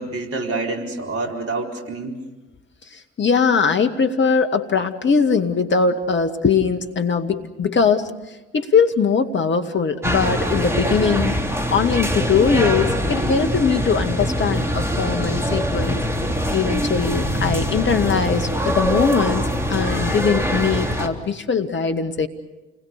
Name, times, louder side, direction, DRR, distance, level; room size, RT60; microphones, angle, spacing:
voice 1, 0.0-2.2, right 3 dB, 45° right, 2 dB, 4.4 m, -27 dB
voice 2, 2.9-8.1 8.5-11.4 11.7-16.1 16.5-22.3, left 5 dB, 35° left, 6 dB, 2.1 m, -21 dB
sound 1, 10.0-21.1, equal, 10° right, 3.4 m, -23 dB
29.0 x 21.5 x 6.8 m, 1.1 s
figure-of-eight pair, 55°, 34 cm